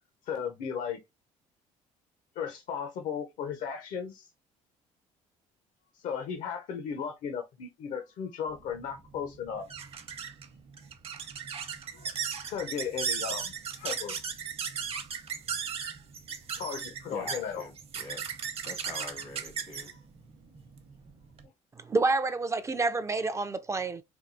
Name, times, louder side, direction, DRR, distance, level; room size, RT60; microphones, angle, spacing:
voice 1, 0.2-1.0 2.4-4.3 5.9-9.7 11.9-12.1 12.4-14.2 16.5-17.7, left 7 dB, 65° left, 0.7 m, -36 dB
sound 1, 8.5-21.5, right 7 dB, 45° right, 0.8 m, -37 dB
voice 2, 17.1-18.2 18.6-19.9, left 3 dB, 85° left, 2.0 m, -44 dB
voice 3, 21.8-24.0, right 3 dB, 20° right, 0.4 m, -28 dB
4.5 x 2.3 x 2.6 m
supercardioid pair, 90°, 14 cm